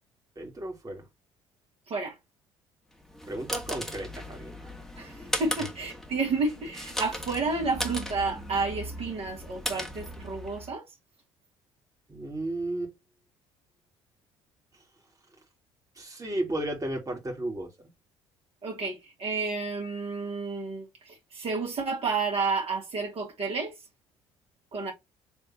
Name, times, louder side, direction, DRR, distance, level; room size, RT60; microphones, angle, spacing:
voice 1, 0.4-1.1 3.3-4.7 12.1-12.9 14.7-14.8 15.9-17.9, right 1 dB, 25° right, 2.5 m, -34 dB
sound 1, 3.0-10.7, equal, ahead, 1.9 m, -37 dB
voice 2, 5.4-10.8 18.6-23.7 24.7-24.9, right 4 dB, 45° right, 2.5 m, -31 dB
6.9 x 3.4 x 4.3 m
hypercardioid pair, 55°, 14 cm